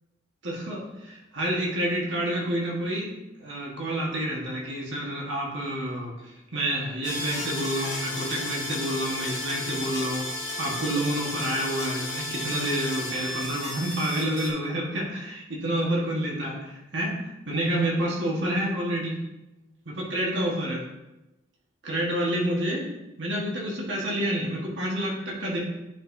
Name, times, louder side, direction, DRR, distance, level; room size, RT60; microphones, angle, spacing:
voice 1, 0.4-3.1 3.4-19.2 19.8-20.8 21.8-22.8 23.2-25.6, right 1 dB, 70° right, -3 dB, 1.5 m, -29 dB
sound 1, 7.0-14.5, left 1 dB, 25° left, 2.0 m, -33 dB
10.5 x 5.1 x 2.7 m, 1.0 s
head